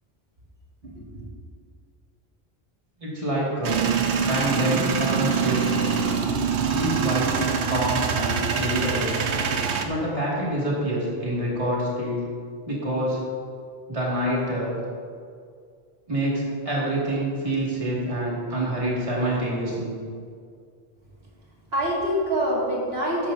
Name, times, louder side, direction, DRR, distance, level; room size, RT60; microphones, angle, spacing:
voice 1, 0.8-1.3 21.7-23.3, equal, 65° right, -5 dB, 2.7 m, -26 dB
voice 2, 3.0-3.8 4.3-6.2 6.7-9.1 9.8-12.2 12.7-13.2 13.9-14.8 16.1-20.0, right 1 dB, 30° right, -6 dB, 2.4 m, -26 dB
Male speech man speaking / Vehicle / Engine starting, 3.6-9.9, right 6 dB, 80° right, 1.1 m, -24 dB
13.5 x 9.5 x 2.8 m, 2.1 s
omnidirectional pair, 1.1 m